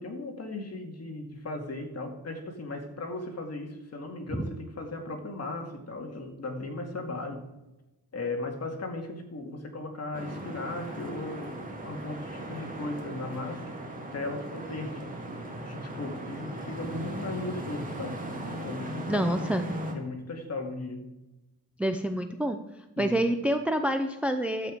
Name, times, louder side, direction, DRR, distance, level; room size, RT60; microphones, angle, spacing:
voice 1, 0.0-7.5 8.1-13.8 14.1-15.0 15.6-18.2 18.6-19.3 19.9-21.1 23.0-23.2, left 2 dB, 40° left, 3 dB, 2.1 m, -37 dB
sound 1, 10.1-19.9, right 1 dB, 20° right, 2.1 m, -38 dB
voice 2, 19.1-19.7 21.8-22.6 23.0-24.7, right 1 dB, 5° right, 7 dB, 0.6 m, -27 dB
12.0 x 8.0 x 5.1 m, 1.0 s
cardioid pair, 120°, 39 cm